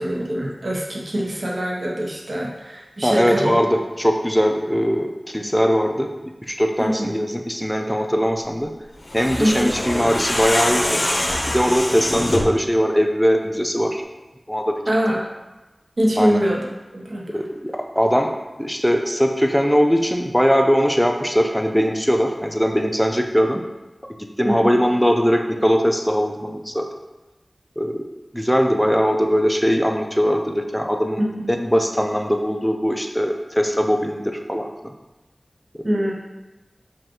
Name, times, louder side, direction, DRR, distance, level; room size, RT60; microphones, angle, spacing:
voice 1, 0.0-3.6 6.8-7.1 9.4-9.7 14.8-15.2 16.0-17.3 24.4-24.7 31.2-31.5 35.8-36.1, equal, 70° right, -3 dB, 0.8 m, -23 dB
voice 2, 3.0-6.1 6.4-8.7 9.1-11.0 11.5-14.0 14.5-14.7 16.2-16.4 17.3-18.3 18.6-23.6 24.4-26.9 27.8-28.1 28.3-31.2 31.5-34.9 35.8-35.9, equal, 5° left, 4 dB, 0.4 m, -20 dB
warp-optimized, 9.0-12.6, left 1 dB, 60° left, 0.6 m, -24 dB
5.1 x 2.4 x 3.0 m, 1.1 s
wide cardioid pair, 45°, 0 cm